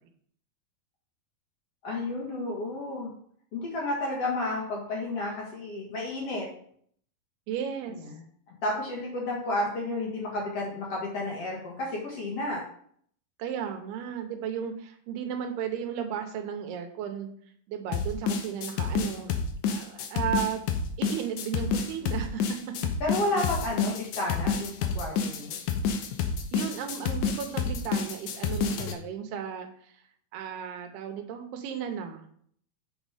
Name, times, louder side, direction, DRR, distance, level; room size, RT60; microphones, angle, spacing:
voice 1, 1.8-3.1 3.5-6.5 7.9-8.2 8.5-12.6 23.0-25.5, left 2 dB, 55° left, -3 dB, 1.9 m, -31 dB
voice 2, 7.5-8.0 13.4-17.3 17.7-19.3 19.7-20.6 21.0-22.7 23.8-23.9 26.5-30.0 30.3-32.3, right 8 dB, 90° right, 5 dB, 2.9 m, -34 dB
sound 1, 17.9-29.0, left 6 dB, 85° left, 1.7 m, -29 dB
6.5 x 5.8 x 4.9 m, 0.62 s
omnidirectional pair, 4.5 m